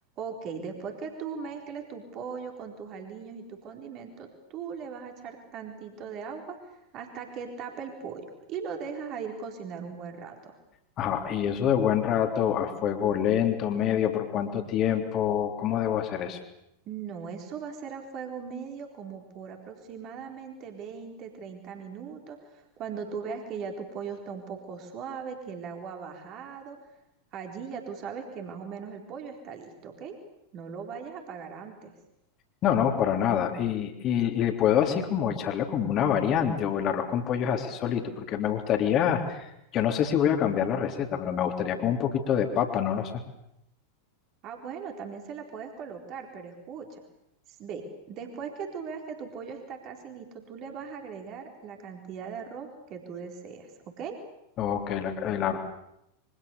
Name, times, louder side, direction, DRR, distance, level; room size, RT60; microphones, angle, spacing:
voice 1, 0.2-10.5 16.9-26.8 27.3-30.2 30.5-31.9 44.4-47.0 47.6-53.7 54.0-54.2, right 6 dB, 35° right, 3 dB, 4.0 m, -39 dB
voice 2, 11.0-16.4 32.6-39.5 39.7-43.1 54.6-55.6, left 9 dB, 35° left, 4 dB, 3.5 m, -26 dB
27.5 x 24.5 x 7.0 m, 0.82 s
figure-of-eight pair, 90°, 0 cm